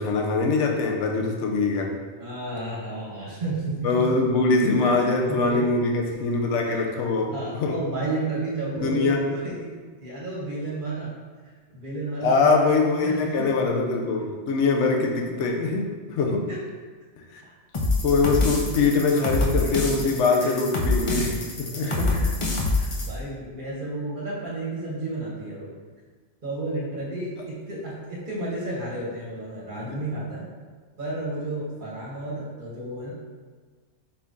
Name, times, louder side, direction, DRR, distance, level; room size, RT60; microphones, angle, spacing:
voice 1, 0.0-1.9 3.8-7.3 7.6-7.8 8.8-9.2 12.2-16.5 17.3-17.4 18.0-22.1 29.9-30.0, left 3 dB, 85° left, 1 dB, 0.9 m, -23 dB
voice 2, 2.2-4.0 4.8-5.6 6.7-6.8 7.3-9.7 10.0-11.1 11.7-13.5 16.5-16.6 18.6-18.8 20.3-20.6 21.7-22.3 22.8-25.7 26.4-30.5 31.0-33.1, right 2 dB, 45° right, -6 dB, 1.2 m, -32 dB
sound 1, 17.7-23.1, left 2 dB, 40° left, 0.4 m, -26 dB
4.5 x 2.6 x 3.5 m, 1.4 s
omnidirectional pair, 1.2 m